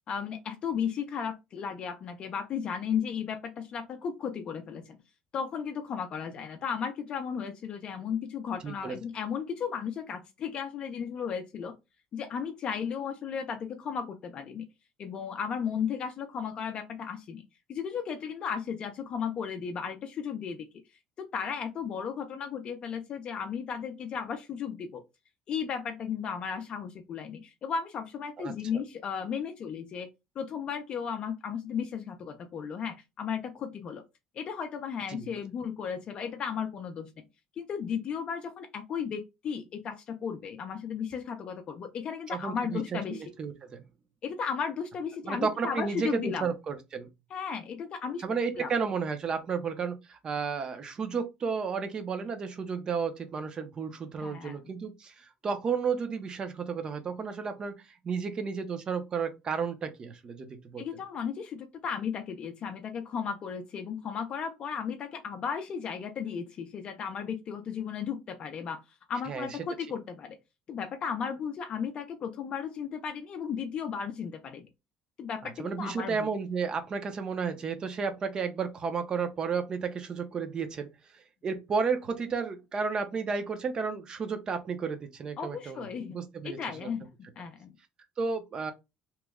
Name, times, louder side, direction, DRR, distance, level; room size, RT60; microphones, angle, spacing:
voice 1, 0.1-5.0 5.3-11.7 12.1-14.7 15.0-17.4 17.7-20.6 21.2-25.0 25.5-30.1 30.4-34.0 34.4-37.1 37.6-43.2 44.2-46.5 47.3-48.2 48.6-48.7 54.2-54.6 60.8-68.8 69.1-70.4 70.7-74.7 75.2-76.3 85.4-86.2 86.4-87.1 87.4-87.7, left 7 dB, 35° left, 0.4 m, -35 dB
voice 2, 8.6-9.0 28.4-28.8 35.1-35.3 42.3-43.8 45.2-47.1 48.2-57.7 58.0-60.8 69.3-69.5 75.6-80.9 81.4-86.9 88.2-88.7, right 5 dB, 25° right, 0.5 m, -32 dB
3.0 x 2.1 x 3.5 m
cardioid pair, 165°, 3 cm